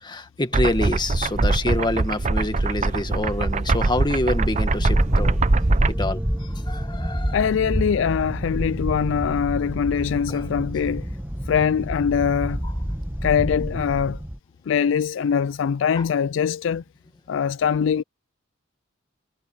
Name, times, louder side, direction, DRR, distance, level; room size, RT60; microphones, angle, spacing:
voice 1, 0.0-5.4 5.9-7.4 10.3-10.5 16.0-16.1, left 1 dB, 20° left, 1.6 m, -27 dB
sound 1, 0.5-5.9, right 3 dB, 35° right, 0.7 m, -22 dB
sound 2, 4.8-14.4, equal, 10° right, 1.4 m, -28 dB
voice 2, 7.3-11.1 11.5-12.6 13.2-14.2 14.7-16.8 17.3-18.0, left 7 dB, 65° left, 0.3 m, -22 dB
head